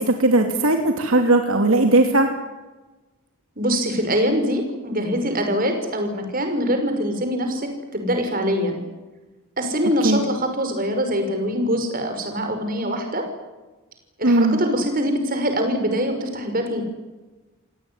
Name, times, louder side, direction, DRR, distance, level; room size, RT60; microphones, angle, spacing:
voice 1, 0.0-2.3 10.0-10.2 14.2-14.6, right 2 dB, 70° right, 4 dB, 2.7 m, -18 dB
voice 2, 3.6-8.8 9.6-13.3 14.2-16.8, equal, 40° right, 5 dB, 5.9 m, -23 dB
28.0 x 18.5 x 10.0 m, 1.2 s
head